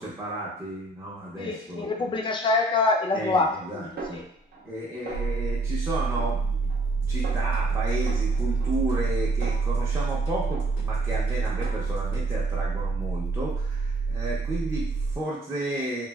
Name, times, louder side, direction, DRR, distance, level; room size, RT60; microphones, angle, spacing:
voice 1, 0.0-2.1 3.1-4.2 4.6-6.8 7.1-16.1, right 1 dB, 15° right, -6 dB, 0.7 m, -33 dB
voice 2, 1.4-3.6 4.1-4.2, left 3 dB, 25° left, 1 dB, 0.5 m, -25 dB
Snare drum, 4.0-4.8 5.1-5.6 6.1-6.9 7.2-7.6 8.1-10.2 10.5-11.0 11.5-12.2, right 3 dB, 55° right, 0.8 m, -42 dB
sound 1, 5.1-15.2, right 5 dB, 80° right, 0.6 m, -27 dB
sound 2, 7.0-12.5, left 3 dB, 90° left, 0.7 m, -47 dB
3.1 x 2.3 x 2.3 m, 0.69 s
cardioid pair, 90°, 20 cm